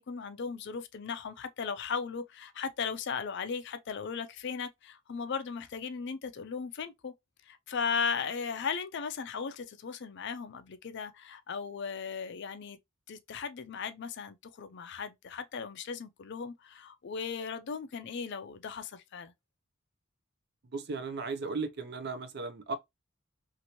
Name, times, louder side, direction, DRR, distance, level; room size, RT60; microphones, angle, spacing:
voice 1, 0.0-7.1 7.5-12.8 13.1-19.3, left 6 dB, 60° left, 0.4 m, -37 dB
voice 2, 20.7-22.7, right 4 dB, 55° right, 0.5 m, -36 dB
2.8 x 2.6 x 2.8 m
head